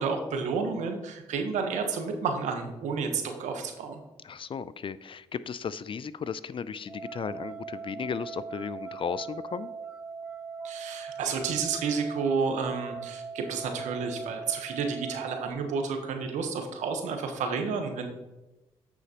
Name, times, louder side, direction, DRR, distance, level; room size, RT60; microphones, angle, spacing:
voice 1, 0.0-4.0 10.6-18.1, right 5 dB, 80° right, 5 dB, 1.1 m, -31 dB
voice 2, 4.2-9.7, left 6 dB, 45° left, 16 dB, 0.4 m, -35 dB
sound 1, 6.8-15.5, right 5 dB, 10° right, 0.7 m, -40 dB
9.4 x 6.2 x 2.9 m, 1.0 s
supercardioid pair, 50°, 12 cm